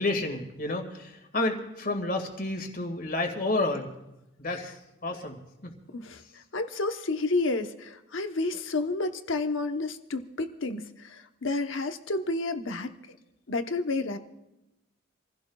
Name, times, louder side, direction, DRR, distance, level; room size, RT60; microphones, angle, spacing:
voice 1, 0.0-3.9 4.4-4.7 5.0-5.4 5.6-5.7, left 2 dB, 45° left, 5 dB, 2.0 m, -30 dB
voice 2, 6.5-12.9 13.5-14.2, left 3 dB, 80° left, 7 dB, 1.0 m, -30 dB
27.0 x 16.0 x 2.4 m, 0.93 s
head